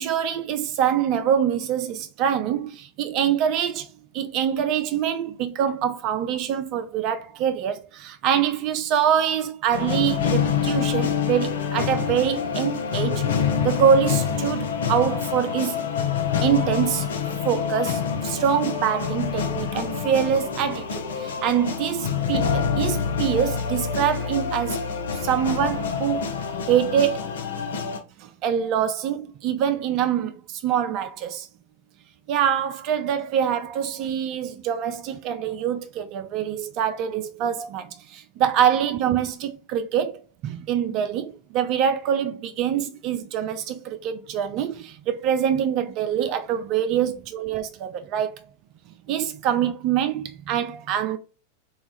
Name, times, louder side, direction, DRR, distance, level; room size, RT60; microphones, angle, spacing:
voice 1, 0.0-3.9 4.1-15.8 16.4-17.1 17.4-24.8 25.1-26.2 26.7-27.4 27.7-27.8 28.2-31.5 32.3-48.4 49.1-51.2, right 9 dB, 40° right, 0.3 m, -25 dB
sound 1, 9.7-28.0, left 7 dB, 65° left, 0.6 m, -26 dB
3.9 x 2.3 x 3.9 m
figure-of-eight pair, 90°, 0 cm